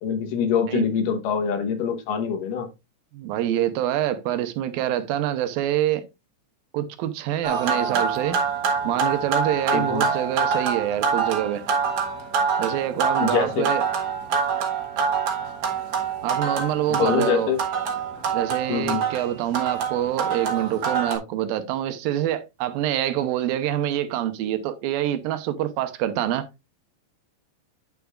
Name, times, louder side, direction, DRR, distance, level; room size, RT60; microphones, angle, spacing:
voice 1, 0.0-2.7 9.7-10.0 13.2-13.7 16.9-17.6 18.7-19.0, left 7 dB, 70° left, 2.6 m, -24 dB
voice 2, 3.1-6.0 6.7-8.4 8.8-11.6 12.6-13.8 16.2-17.5 18.3-26.5, right 12 dB, 80° right, 2.6 m, -26 dB
sound 1, 7.4-21.2, right 6 dB, 55° right, 2.0 m, -25 dB
9.1 x 7.0 x 2.3 m
omnidirectional pair, 4.1 m